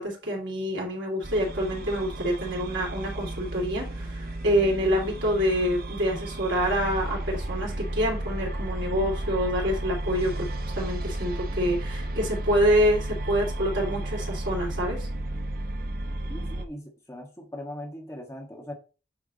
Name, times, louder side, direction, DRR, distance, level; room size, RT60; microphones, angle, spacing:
voice 1, 0.0-10.5 10.7-15.1, equal, 80° right, 3.0 m, -26 dB
sound 1, 1.2-16.6, right 1 dB, 50° right, 0.7 m, -33 dB
voice 2, 16.3-18.7, left 1 dB, 15° left, 1.5 m, -40 dB
8.6 x 3.6 x 4.0 m
head